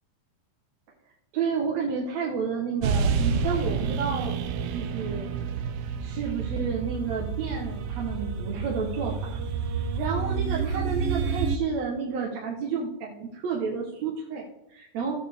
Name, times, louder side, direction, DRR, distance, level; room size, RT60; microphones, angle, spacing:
voice 1, 1.3-4.4 4.7-5.3 6.0-9.4 10.0-15.1, right 5 dB, 65° right, -2 dB, 2.1 m, -31 dB
sound 1, 2.8-11.6, right 5 dB, 85° right, 1.4 m, -29 dB
14.0 x 8.6 x 3.5 m, 0.82 s
omnidirectional pair, 3.7 m